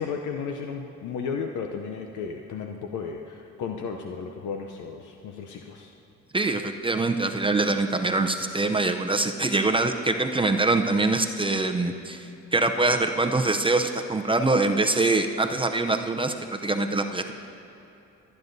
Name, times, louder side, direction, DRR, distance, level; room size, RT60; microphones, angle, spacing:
voice 1, 0.0-5.9, left 5 dB, 75° left, 3 dB, 0.7 m, -34 dB
voice 2, 6.3-17.3, right 2 dB, 15° right, 5 dB, 0.6 m, -24 dB
25.0 x 9.5 x 2.7 m, 3.0 s
cardioid pair, 90°, 30 cm